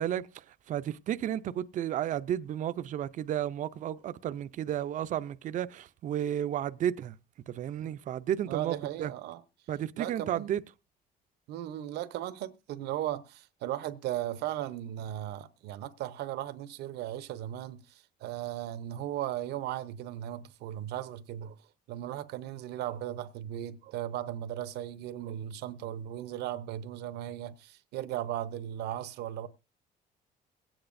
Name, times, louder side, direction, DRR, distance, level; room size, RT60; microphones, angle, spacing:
voice 1, 0.0-7.2 7.5-9.1 9.7-10.6, right 10 dB, 50° right, 0.5 m, -33 dB
voice 2, 8.5-9.4 10.0-10.5 11.5-21.6 21.9-29.5, right 12 dB, 80° right, 0.8 m, -37 dB
22.0 x 8.9 x 2.6 m
cardioid pair, 110°, 17 cm